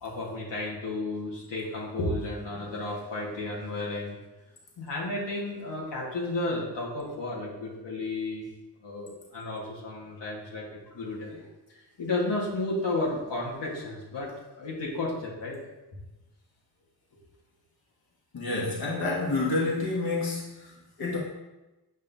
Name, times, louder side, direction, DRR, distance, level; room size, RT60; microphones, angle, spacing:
voice 1, 0.0-4.2 4.8-8.5 8.8-15.6, left 2 dB, 75° left, -5 dB, 1.7 m, -33 dB
voice 2, 18.3-21.2, left 3 dB, 55° left, -5 dB, 1.7 m, -29 dB
8.2 x 5.3 x 2.7 m, 1.0 s
wide cardioid pair, 75°, 43 cm